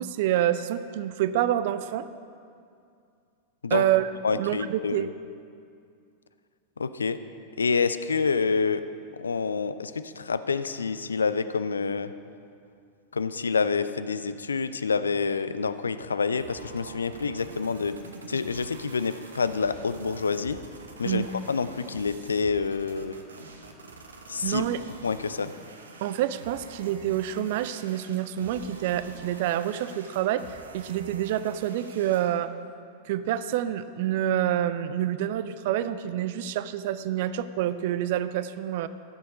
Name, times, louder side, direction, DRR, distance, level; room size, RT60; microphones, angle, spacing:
voice 1, 0.0-2.1 3.7-5.1 21.0-21.3 24.4-24.8 26.0-32.5 33.1-38.9, right 11 dB, 50° right, 14 dB, 0.4 m, -27 dB
voice 2, 4.2-5.1 6.8-7.2 7.6-8.8 9.2-12.1 13.1-18.0 18.3-20.6 21.0-23.2 24.3-24.6 25.0-25.5, left 5 dB, 75° left, 13 dB, 0.4 m, -27 dB
sound 1, 16.4-32.4, right 3 dB, 70° right, 0.9 m, -46 dB
14.0 x 6.4 x 5.2 m, 2.4 s
figure-of-eight pair, 90°, 0 cm